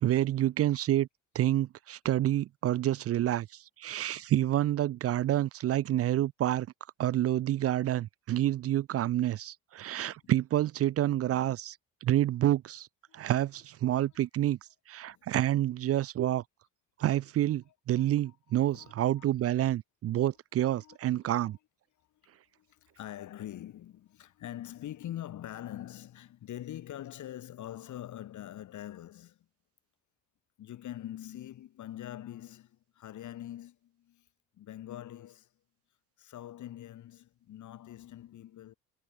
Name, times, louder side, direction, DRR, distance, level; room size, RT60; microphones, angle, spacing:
voice 1, 0.0-1.1 1.3-6.7 7.0-12.9 13.1-14.6 14.9-16.4 17.0-21.6, right 13 dB, 50° right, 0.5 m, -28 dB
voice 2, 9.9-10.6 13.1-13.7 14.0-14.3 15.0-15.2 17.7-19.4 20.2-20.3 20.8-21.6 22.0-22.1 22.5-29.5 30.6-34.3 34.5-35.5 36.2-38.7, left 12 dB, 65° left, 3.5 m, -45 dB
supercardioid pair, 70°, 32 cm